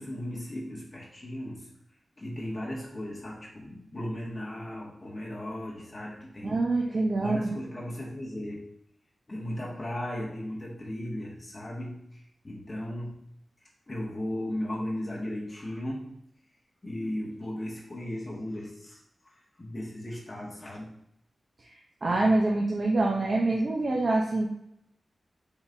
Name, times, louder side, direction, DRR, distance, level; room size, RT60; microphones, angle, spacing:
voice 1, 0.0-1.7 2.2-6.6 6.9-8.7 9.3-13.2 13.9-16.1 16.8-20.9, left 1 dB, 25° left, -4 dB, 1.1 m, -36 dB
voice 2, 6.4-7.5 22.0-24.5, right 2 dB, 45° right, -2 dB, 0.7 m, -25 dB
4.1 x 3.8 x 3.5 m, 0.75 s
wide cardioid pair, 105°, 0 cm